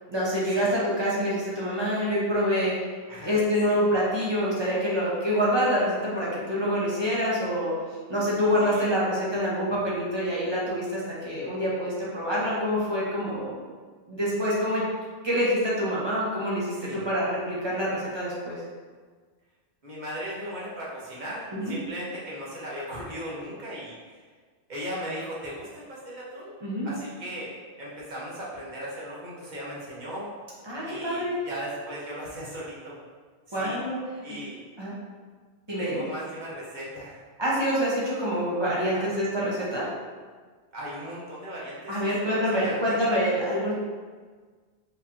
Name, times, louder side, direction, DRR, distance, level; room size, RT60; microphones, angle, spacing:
voice 1, 0.1-2.7 3.2-7.7 8.1-13.6 14.1-14.9 15.2-18.6 21.5-21.7 26.6-26.9 30.7-31.4 33.5-34.0 34.8-34.9 35.7-36.0 37.4-39.8 41.9-43.7, equal, 25° right, -8 dB, 1.2 m, -26 dB
voice 2, 3.1-3.4 3.7-3.8 8.6-8.8 16.7-17.0 19.8-24.2 24.7-26.6 26.8-27.5 27.8-30.3 30.8-33.0 33.5-33.8 34.2-34.6 35.8-37.2 38.8-39.1 40.7-43.0, equal, 45° right, -7 dB, 1.3 m, -37 dB
4.9 x 3.3 x 2.8 m, 1.5 s
omnidirectional pair, 1.1 m